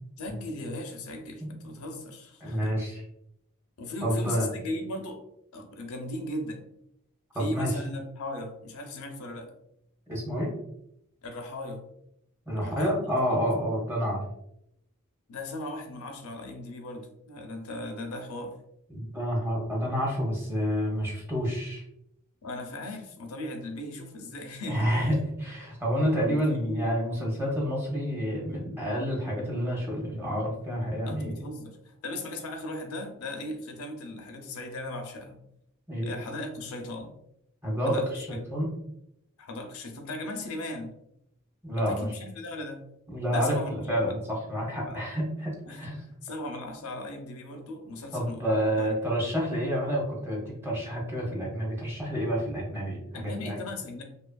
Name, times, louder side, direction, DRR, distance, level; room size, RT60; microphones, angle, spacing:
voice 1, 0.2-2.8 3.8-5.2 5.5-6.6 7.3-9.5 11.2-11.8 12.6-13.5 15.3-18.5 22.4-25.1 26.3-26.9 31.0-35.4 36.0-37.1 37.8-38.3 39.4-40.9 41.7-42.9 43.3-44.2 44.8-45.0 45.6-45.9 46.2-48.9 53.1-54.0, left 1 dB, 75° left, 4 dB, 0.5 m, -38 dB
voice 2, 2.4-3.0 4.0-4.5 7.3-7.7 10.1-10.5 12.5-14.2 18.9-21.8 24.7-31.4 35.9-36.1 37.6-38.7 41.6-42.1 43.1-46.0 48.1-53.6, equal, 10° right, -3 dB, 0.7 m, -29 dB
2.7 x 2.4 x 2.2 m, 0.77 s
head